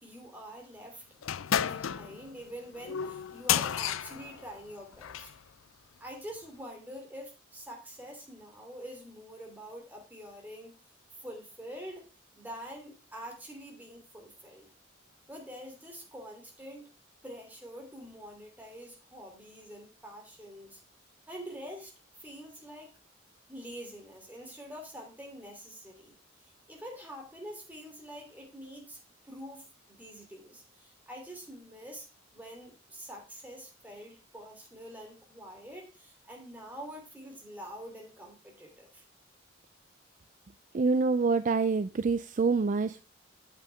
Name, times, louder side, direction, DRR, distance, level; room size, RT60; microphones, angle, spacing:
voice 1, 0.0-1.0 1.6-5.3 6.0-10.7 11.1-12.1 12.3-14.7 15.3-16.9 17.2-20.8 21.3-21.9 22.2-22.9 23.5-26.1 26.7-32.0 32.3-39.0, equal, 10° right, 1 dB, 3.0 m, -46 dB
sound 1, 1.2-5.4, left 9 dB, 80° left, 0.4 m, -32 dB
voice 2, 40.7-43.0, right 4 dB, 40° right, 13 dB, 0.4 m, -26 dB
9.0 x 7.7 x 3.4 m, 0.32 s
head